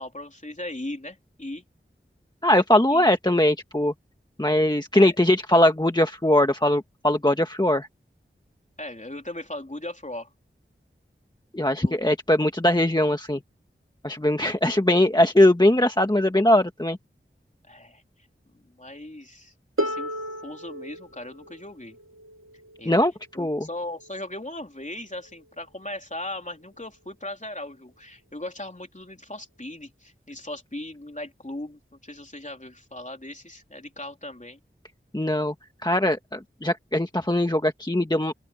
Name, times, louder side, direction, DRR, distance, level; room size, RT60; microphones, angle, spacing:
voice 1, 0.0-1.6 2.9-3.1 4.9-5.1 8.8-10.3 11.8-12.0 17.6-18.0 18.5-20.1 20.4-22.0 22.8-23.0 23.3-34.6, left 1 dB, 35° left, 3.6 m, -38 dB
voice 2, 2.4-3.9 4.4-7.9 11.5-13.4 14.0-17.0 22.8-23.1 23.4-23.7 35.1-35.5 35.8-38.3, left 1 dB, 20° left, 1.6 m, -21 dB
Harp, 19.8-25.6 26.6-26.7, equal, 75° right, 2.5 m, -36 dB
open air
wide cardioid pair, 45°, 21 cm